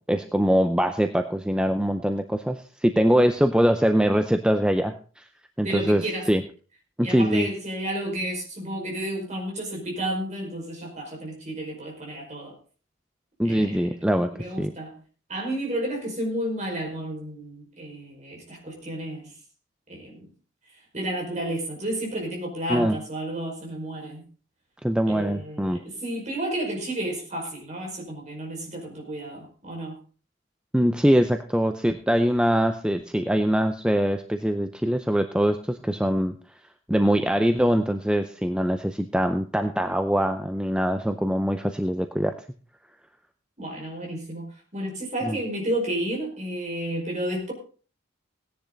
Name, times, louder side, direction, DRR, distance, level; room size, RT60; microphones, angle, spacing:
voice 1, 0.1-5.2 5.6-6.0 6.3-6.4 7.0-7.5 13.4-14.3 14.6-14.7 22.7-23.0 24.8-25.8 30.7-36.4 36.9-42.3 45.2-45.4, equal, 5° right, 7 dB, 0.5 m, -23 dB
voice 2, 5.6-6.3 7.0-12.5 13.4-13.9 14.3-15.0 15.3-19.3 19.9-20.3 20.9-24.2 25.1-30.0 43.6-47.5, right 1 dB, 35° right, 0 dB, 5.2 m, -31 dB
17.0 x 10.5 x 3.9 m, 0.39 s
head